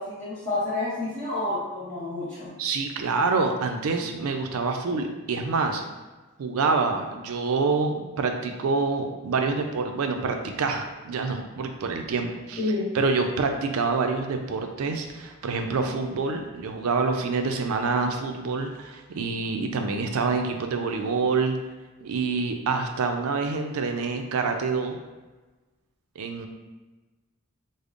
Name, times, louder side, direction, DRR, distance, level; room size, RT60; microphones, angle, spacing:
voice 1, 0.0-2.5 12.6-12.9, left 2 dB, 15° left, -14 dB, 0.9 m, -29 dB
voice 2, 2.6-5.8 6.4-12.6 12.9-21.6 22.0-25.0 26.2-26.5, right 4 dB, 80° right, 5 dB, 0.4 m, -26 dB
5.0 x 2.0 x 2.4 m, 1.2 s
head